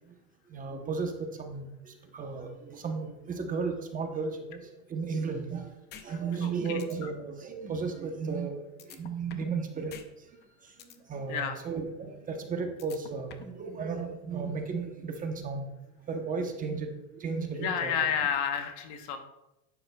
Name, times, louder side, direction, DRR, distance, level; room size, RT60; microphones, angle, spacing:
voice 1, 0.5-4.6 4.9-5.6 6.0-8.6 8.9-9.9 11.1-15.7 16.1-16.9 17.2-18.1, right 5 dB, 20° right, 4 dB, 0.9 m, -34 dB
sound 1, 5.9-6.1 6.4-6.5 6.8-7.0 8.8-9.6 9.9-10.1 10.4-11.0 12.8-13.6, left 9 dB, 25° left, 0.6 m, -47 dB
voice 2, 6.4-6.8 11.3-11.6 17.6-19.2, left 8 dB, 45° left, 7 dB, 1.0 m, -30 dB
11.5 x 9.4 x 2.3 m, 0.93 s
supercardioid pair, 140°, 42 cm